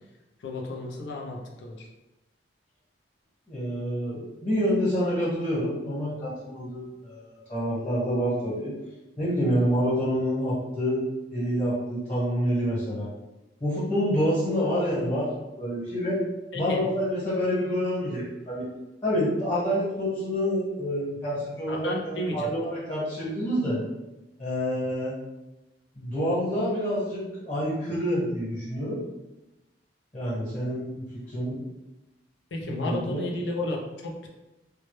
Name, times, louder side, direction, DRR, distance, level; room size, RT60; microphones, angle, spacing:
voice 1, 0.4-1.9 16.5-16.9 21.7-22.5 32.5-34.3, left 1 dB, 70° left, 0 dB, 0.5 m, -32 dB
voice 2, 3.5-8.7 9.2-13.1 13.6-16.2 16.5-18.7 19.0-23.8 24.4-25.1 25.9-29.0 30.1-31.6 32.8-33.2, equal, 35° left, -9 dB, 1.1 m, -27 dB
2.2 x 2.0 x 2.9 m, 1.0 s
head